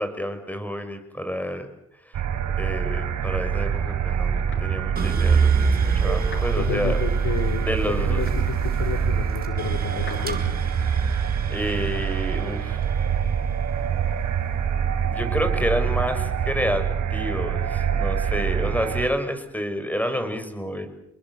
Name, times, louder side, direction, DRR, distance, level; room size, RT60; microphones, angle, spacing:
voice 1, 0.0-1.7 2.0-2.2 2.5-7.0 7.6-8.2 11.5-12.8 15.1-20.9, equal, 5° left, 9 dB, 6.4 m, -29 dB
sound 1, 2.1-19.1, right 8 dB, 70° right, 4.0 m, -25 dB
sound 2, 3.2-12.2, left 3 dB, 40° left, 7.2 m, -48 dB
sound 3, 5.0-15.2 15.6-16.4, right 5 dB, 30° right, 4.8 m, -27 dB
voice 2, 6.6-7.7 8.0-10.7, left 7 dB, 70° left, 8 dB, 3.7 m, -31 dB
30.0 x 21.0 x 8.2 m, 0.76 s
cardioid pair, 90°, 30 cm